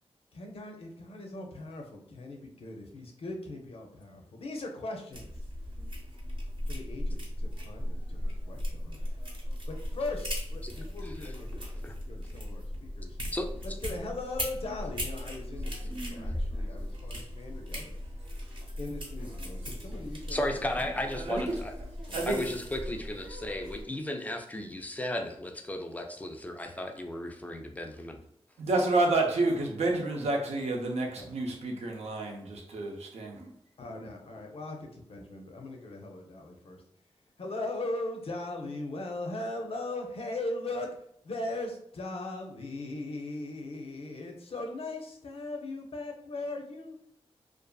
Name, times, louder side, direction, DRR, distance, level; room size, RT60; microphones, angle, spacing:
voice 1, 0.3-5.3 6.7-9.1 9.7-11.8 12.1-13.2 13.8-18.0 18.8-21.0 22.1-22.3 31.1-31.3 33.8-36.8 37.4-40.9 41.2-47.0, left 2 dB, 65° left, 2 dB, 0.5 m, -39 dB
sound 1, 5.1-23.8, equal, 50° right, 0.8 m, -37 dB
voice 2, 20.3-21.7 22.3-28.2, left 1 dB, 15° left, 4 dB, 0.3 m, -35 dB
voice 3, 21.1-21.6 22.1-22.4 28.6-33.5, right 2 dB, 85° right, 1 dB, 0.6 m, -29 dB
2.5 x 2.4 x 2.2 m, 0.73 s
wide cardioid pair, 95°, 11 cm